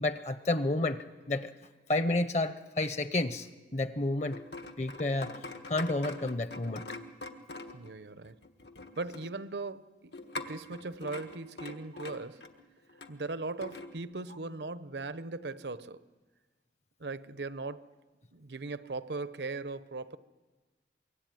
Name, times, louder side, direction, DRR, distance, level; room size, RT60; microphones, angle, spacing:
voice 1, 0.0-1.5 1.9-3.5 3.7-4.4 4.8-5.3 5.7-6.8, left 2 dB, 40° left, 0.7 m, -30 dB
sound 1, 4.3-7.9 8.2-9.3 10.1-13.1 13.6-13.9, left 2 dB, 80° left, 1.6 m, -43 dB
voice 2, 7.7-8.4 9.0-10.1 10.5-12.4 13.1-16.0 17.0-17.9 18.3-20.2, right 3 dB, 80° right, 0.9 m, -39 dB
25.0 x 23.0 x 9.2 m
head